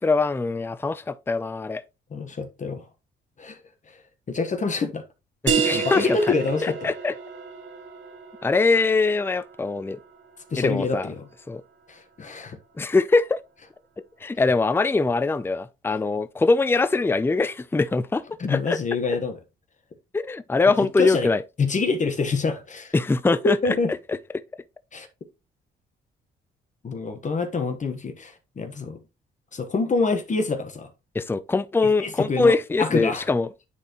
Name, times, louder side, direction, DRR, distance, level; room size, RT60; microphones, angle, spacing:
voice 1, 0.0-1.8 5.4-6.3 6.6-7.1 8.4-10.0 10.6-11.1 11.5-11.6 12.8-13.4 14.2-18.2 18.5-18.8 20.1-21.4 22.9-23.6 24.1-24.2 31.1-33.5, left 3 dB, 10° left, 0.5 m, -22 dB
voice 2, 2.1-2.8 3.4-3.6 3.9-4.0 4.3-5.0 5.7-6.9 10.5-11.3 11.9-12.6 18.4-19.4 20.8-21.3 21.6-22.9 23.4-23.9 24.9-25.1 26.8-29.0 29.5-30.9 31.8-33.3, left 4 dB, 40° left, 1.2 m, -26 dB
sound 1, 5.5-10.8, right 6 dB, 70° right, 1.5 m, -30 dB
9.7 x 4.2 x 3.0 m
cardioid pair, 90°, 20 cm